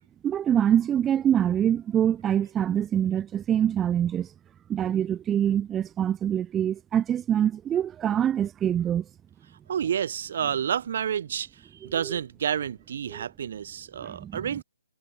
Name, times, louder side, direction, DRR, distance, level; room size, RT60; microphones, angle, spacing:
voice 1, 0.2-4.3 4.7-9.1 11.8-12.2 13.1-13.2 14.0-14.5, right 10 dB, 10° right, 0.4 m, -25 dB
voice 2, 9.7-11.5 11.8-14.6, right 8 dB, 50° right, 0.8 m, -29 dB
hypercardioid pair, 160°, 0 cm